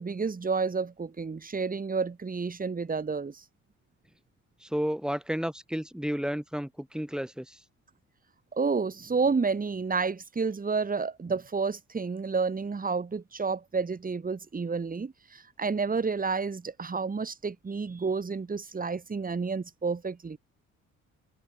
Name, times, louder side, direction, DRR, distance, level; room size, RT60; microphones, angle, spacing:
voice 1, 0.0-3.4 8.5-20.4, right 4 dB, 30° right, 3.0 m, -30 dB
voice 2, 4.6-7.6, equal, ahead, 3.1 m, -32 dB
cardioid pair, 90°, 30 cm